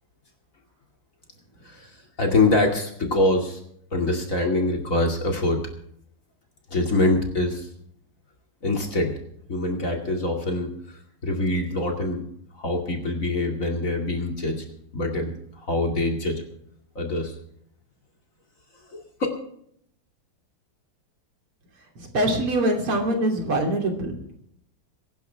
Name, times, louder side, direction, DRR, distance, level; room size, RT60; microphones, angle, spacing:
voice 1, 2.2-3.6 3.9-5.6 6.7-7.7 8.6-9.1 9.5-10.7 11.2-12.2 12.5-14.6 14.9-16.4 16.9-17.3 18.9-19.0, left 2 dB, 40° left, 2 dB, 2.7 m, -24 dB
voice 2, 22.0-24.1, right 1 dB, 80° right, 2 dB, 3.8 m, -23 dB
22.5 x 11.5 x 3.4 m, 0.68 s
omnidirectional pair, 2.4 m